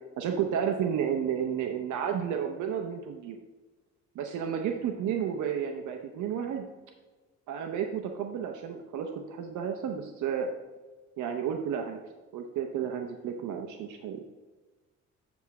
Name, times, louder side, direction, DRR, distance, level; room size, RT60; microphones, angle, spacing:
voice 1, 0.2-3.4 4.1-6.7 7.5-10.5 11.2-12.0 12.3-14.2, right 8 dB, 80° right, 4 dB, 0.8 m, -32 dB
8.1 x 3.6 x 5.8 m, 1.2 s
cardioid pair, 90°, 30 cm